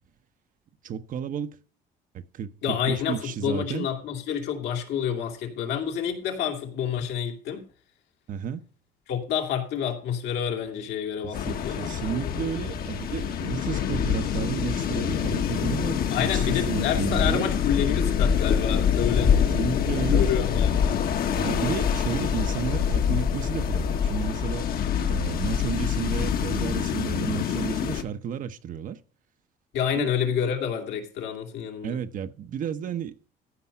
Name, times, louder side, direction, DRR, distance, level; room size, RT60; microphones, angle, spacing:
voice 1, 0.8-1.6 2.1-3.9 8.3-8.6 11.2-17.5 19.3-20.3 21.3-24.7 25.1-29.0 30.0-30.1 31.8-33.2, right 8 dB, 55° right, 0.9 m, -32 dB
voice 2, 2.6-7.7 9.1-12.6 16.1-19.8 20.1-21.0 29.7-32.0, left 8 dB, 80° left, 2.7 m, -29 dB
sound 1, 11.3-28.0, left 8 dB, 60° left, 1.4 m, -25 dB
14.5 x 5.4 x 5.6 m
cardioid pair, 110°, 17 cm